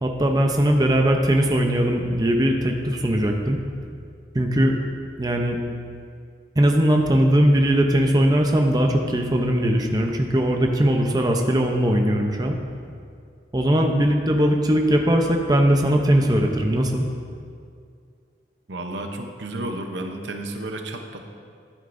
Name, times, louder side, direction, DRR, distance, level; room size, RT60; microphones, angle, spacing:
voice 1, 0.0-3.6 4.3-4.7 5.2-5.6 6.6-12.6 13.5-17.0, equal, 20° right, 2 dB, 0.6 m, -20 dB
voice 2, 18.7-21.2, right 1 dB, 85° right, 5 dB, 0.8 m, -32 dB
12.5 x 8.9 x 2.6 m, 2.2 s
head